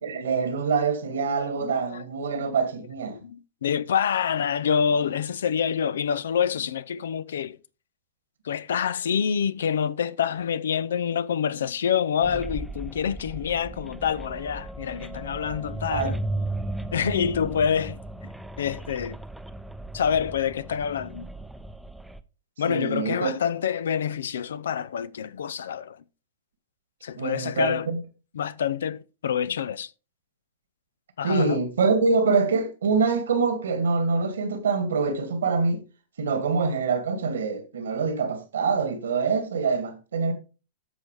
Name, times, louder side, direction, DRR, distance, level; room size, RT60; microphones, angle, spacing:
voice 1, 0.0-3.2 15.9-16.1 22.6-23.3 27.2-28.0 31.2-35.8 36.2-40.3, right 4 dB, 75° right, 1.9 m, -25 dB
voice 2, 1.6-2.0 2.3-2.6 3.1-7.6 8.4-16.5 16.9-18.0 18.6-19.2 19.9-21.3 22.6-26.0 27.0-27.9 28.3-29.9 31.2-31.6, left 8 dB, 75° left, 0.6 m, -27 dB
sound 1, 12.2-22.2, right 1 dB, ahead, 0.7 m, -36 dB
13.5 x 4.8 x 3.3 m
hypercardioid pair, 105°, 0 cm